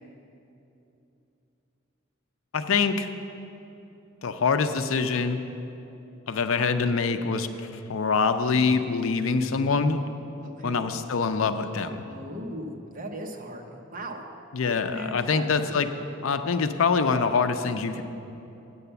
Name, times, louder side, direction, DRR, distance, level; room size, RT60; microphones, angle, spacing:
voice 1, 2.5-3.1 4.2-5.4 6.3-10.0 10.6-12.0 14.5-15.9 16.2-18.0, left 5 dB, 75° left, 9 dB, 0.5 m, -25 dB
voice 2, 10.4-10.9 12.1-14.2 14.6-15.5, right 1 dB, 45° right, 3 dB, 0.9 m, -38 dB
8.5 x 6.9 x 6.8 m, 2.9 s
head